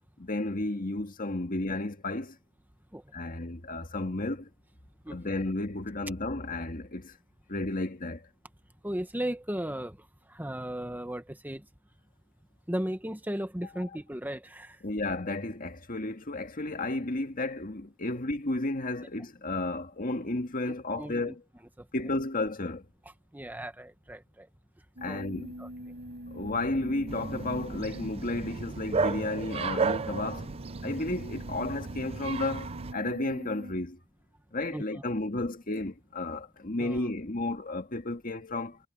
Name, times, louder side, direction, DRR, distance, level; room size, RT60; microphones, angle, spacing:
voice 1, 0.2-2.4 3.1-4.5 5.1-7.2 7.5-8.3 14.8-21.4 21.9-22.8 25.0-25.5 26.3-30.5 30.8-34.0 34.5-38.8, left 2 dB, 45° left, 2.0 m, -32 dB
voice 2, 5.0-5.3 8.8-11.7 12.7-14.8 20.7-21.4 21.8-21.9 23.3-24.5 25.1-25.2 25.6-25.9 34.7-35.0 36.8-37.0, right 1 dB, 10° right, 1.2 m, -36 dB
sound 1, 25.0-33.7, equal, 55° right, 5.8 m, -45 dB
Bark, 27.1-32.9, right 4 dB, 30° right, 0.5 m, -34 dB
head